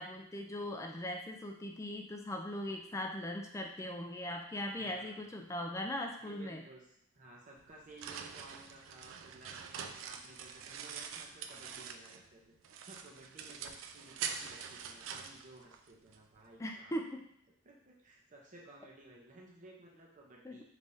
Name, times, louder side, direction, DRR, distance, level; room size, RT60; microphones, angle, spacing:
voice 1, 0.0-6.6 16.6-17.2 20.4-20.6, left 1 dB, 15° left, 2 dB, 0.4 m, -40 dB
voice 2, 4.8-5.3 6.2-6.9 7.1-17.0 17.6-20.6, right 2 dB, 40° right, -2 dB, 0.7 m, -56 dB
sound 1, 7.6-12.3 12.6-16.2, right 7 dB, 70° right, 0.3 m, -45 dB
3.4 x 3.2 x 2.7 m, 0.71 s
head